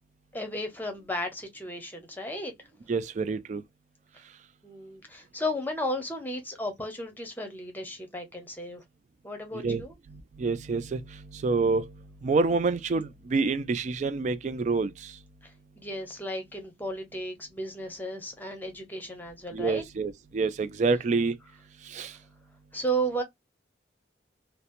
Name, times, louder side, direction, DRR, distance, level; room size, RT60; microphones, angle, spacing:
voice 1, 0.3-2.5 4.6-8.8 9.2-9.9 15.4-19.8 22.7-23.2, right 1 dB, 10° left, 0.8 m, -34 dB
voice 2, 2.9-3.6 9.6-9.8 10.1-11.9 12.2-15.1 19.5-21.4 21.9-22.1, right 4 dB, 40° right, 0.3 m, -27 dB
2.8 x 2.1 x 2.5 m
head